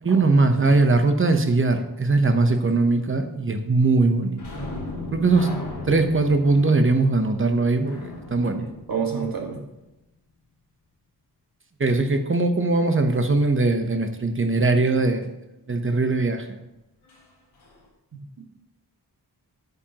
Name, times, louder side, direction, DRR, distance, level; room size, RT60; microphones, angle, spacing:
voice 1, 0.0-4.4 5.1-5.5 5.9-8.6 11.8-15.3 15.7-16.6, right 3 dB, 30° right, 6 dB, 0.9 m, -20 dB
sound 1, 4.4-9.7 17.1-17.2 17.6-17.8, left 2 dB, 75° left, 3.3 m, -37 dB
voice 2, 8.4-9.6 18.4-18.5, right 6 dB, 55° right, 0 dB, 1.9 m, -30 dB
9.8 x 8.7 x 3.0 m, 0.95 s
wide cardioid pair, 130°, 40 cm